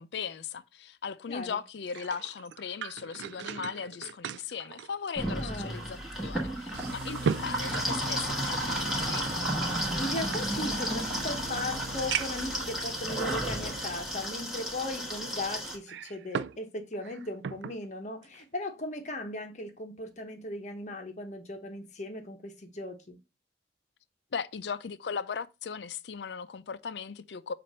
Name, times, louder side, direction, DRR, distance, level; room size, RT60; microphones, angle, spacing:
voice 1, 0.0-9.3 24.3-27.5, left 6 dB, 75° left, 0.5 m, -38 dB
sound 1, 1.7-5.7 6.0-6.1 6.7-8.7 9.6-11.0 11.5-11.6 12.1-12.5 13.3-13.4 15.7-16.6 16.9-17.8 18.2-18.4, right 7 dB, 85° right, 0.3 m, -37 dB
sound 2, 5.2-15.8, equal, ahead, 1.9 m, -33 dB
voice 2, 5.3-5.9 10.0-23.2, left 1 dB, 40° left, 0.9 m, -37 dB
sound 3, 6.7-14.4, right 2 dB, 65° right, 0.8 m, -43 dB
7.5 x 2.6 x 5.5 m
head